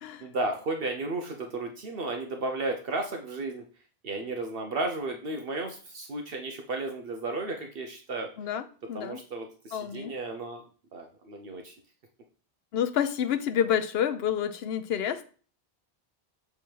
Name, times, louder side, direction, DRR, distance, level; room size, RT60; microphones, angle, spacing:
voice 1, 0.2-3.6 4.0-8.3 8.9-10.6 10.9-11.7, right 2 dB, 65° right, 1.0 m, -33 dB
voice 2, 8.4-9.2 9.7-10.2 12.7-15.2, left 9 dB, 75° left, 0.9 m, -29 dB
6.9 x 3.5 x 4.5 m
omnidirectional pair, 1.1 m